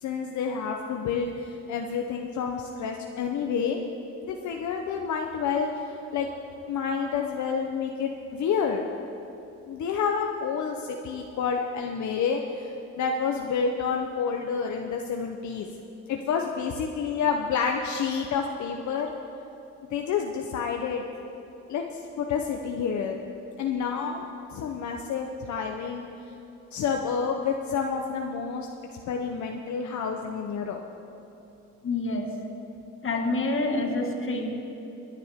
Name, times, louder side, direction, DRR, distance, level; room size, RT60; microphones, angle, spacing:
voice 1, 0.0-3.8 4.3-5.7 6.1-6.3 6.7-8.9 9.7-12.7 13.0-15.7 16.1-19.1 19.9-21.0 21.7-23.2 23.6-24.3 24.5-26.0 26.7-28.7 29.1-30.8, left 6 dB, 70° left, 2 dB, 0.9 m, -29 dB
voice 2, 31.8-32.3 33.0-34.5, left 2 dB, 45° left, 2 dB, 2.0 m, -27 dB
20.5 x 10.5 x 3.6 m, 3.0 s
cardioid pair, 90°, 30 cm